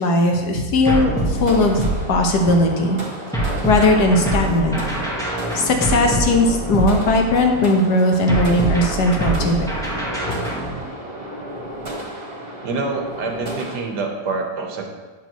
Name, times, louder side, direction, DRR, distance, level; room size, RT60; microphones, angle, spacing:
voice 1, 0.0-3.0 3.7-4.8 5.5-9.7 10.3-10.4, left 2 dB, 65° left, 3 dB, 1.6 m, -18 dB
sound 1, 0.9-2.6 3.3-7.5 8.3-10.8, right 2 dB, ahead, 1.3 m, -24 dB
sound 2, 1.0-13.8, right 1 dB, 35° right, 1.9 m, -33 dB
voice 2, 12.6-14.9, right 3 dB, 70° right, 2 dB, 1.6 m, -26 dB
10.0 x 7.4 x 3.1 m, 1.3 s
omnidirectional pair, 1.9 m